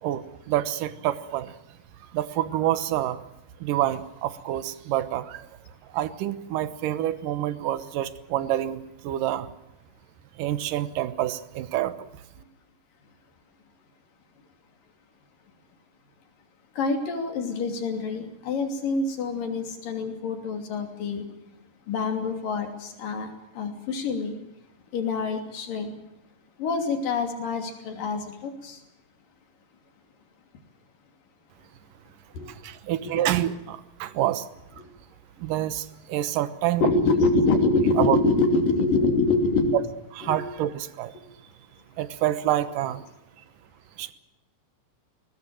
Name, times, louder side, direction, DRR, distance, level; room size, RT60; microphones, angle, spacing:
voice 1, 0.0-1.5 2.1-3.2 3.6-5.5 5.9-9.5 10.4-11.9 32.5-34.5 35.4-36.8 38.0-38.2 40.1-41.1 42.0-43.0 44.0-44.1, right 13 dB, 80° right, 14 dB, 2.7 m, -27 dB
voice 2, 16.8-21.2 21.9-23.3 23.6-24.4 24.9-26.0 26.6-28.8 32.3-32.5 33.0-33.2 34.8-34.9 36.8-39.7 40.2-40.4, left 3 dB, 80° left, 5 dB, 4.6 m, -25 dB
21.0 x 20.0 x 7.6 m, 0.91 s
omnidirectional pair, 3.9 m